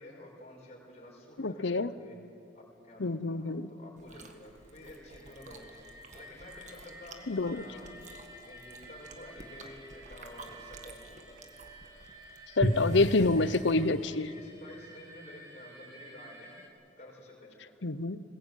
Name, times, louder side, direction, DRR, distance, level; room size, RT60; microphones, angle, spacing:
voice 1, 0.0-2.2 2.5-5.6 6.1-7.9 8.5-11.4 12.9-13.9 14.3-16.5 17.0-17.7, left 1 dB, 35° left, -2 dB, 5.6 m, -51 dB
voice 2, 1.4-1.9 3.0-3.7 7.3-7.6 12.6-14.3 17.8-18.2, left 3 dB, 70° left, 15 dB, 0.8 m, -27 dB
Chewing mastication, 4.0-14.1, right 1 dB, 40° right, 1.8 m, -40 dB
sound 1, 4.4-16.7, right 1 dB, 20° right, 2.9 m, -52 dB
21.5 x 20.0 x 9.2 m, 2.7 s
head